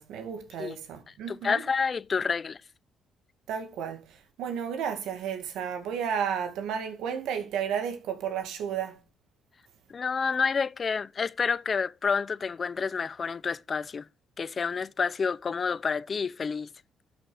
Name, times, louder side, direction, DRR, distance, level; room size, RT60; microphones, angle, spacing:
voice 1, 0.0-1.6 3.5-9.0, right 8 dB, 85° right, 2.0 m, -33 dB
voice 2, 1.3-2.6 9.9-14.1 14.4-16.7, left 5 dB, 40° left, 0.6 m, -29 dB
12.5 x 6.0 x 4.9 m
cardioid pair, 90°, 0 cm